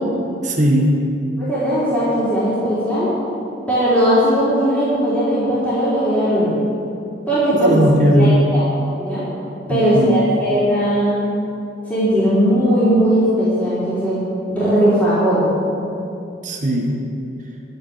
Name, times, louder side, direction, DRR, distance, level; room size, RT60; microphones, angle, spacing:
voice 1, 0.4-1.1 7.5-8.4 9.7-10.2 16.4-17.0, equal, 40° right, 1 dB, 1.5 m, -17 dB
voice 2, 1.4-3.1 3.7-6.6 7.3-7.8 8.1-8.6 9.0-9.3 9.7-11.2 11.9-14.2 14.5-15.5, equal, 10° left, -12 dB, 4.0 m, -18 dB
12.5 x 7.5 x 9.0 m, 2.7 s
head